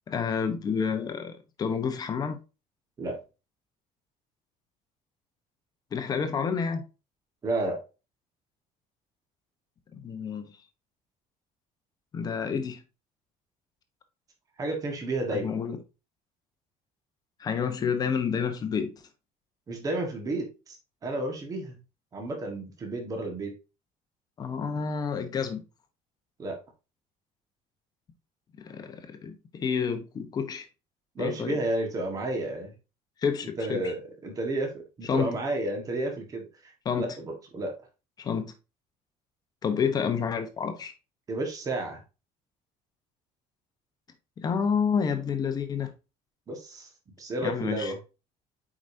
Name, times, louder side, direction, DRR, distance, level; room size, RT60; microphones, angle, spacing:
voice 1, 0.1-1.3 1.6-2.4 5.9-6.8 9.9-10.5 12.1-12.8 15.3-15.8 17.4-18.9 24.4-25.6 28.6-30.7 31.2-31.6 33.2-33.9 35.0-35.3 36.8-37.2 38.2-38.5 39.6-40.9 44.4-45.9 47.4-47.9, left 6 dB, 25° left, 0.9 m, -29 dB
voice 2, 7.4-7.8 14.6-15.5 19.7-20.8 21.0-21.8 22.1-23.5 26.4-26.6 31.1-32.7 33.6-37.7 41.3-42.0 46.5-46.9 47.2-48.0, right 2 dB, 25° right, 1.5 m, -31 dB
7.8 x 5.0 x 2.7 m
cardioid pair, 180°, 15 cm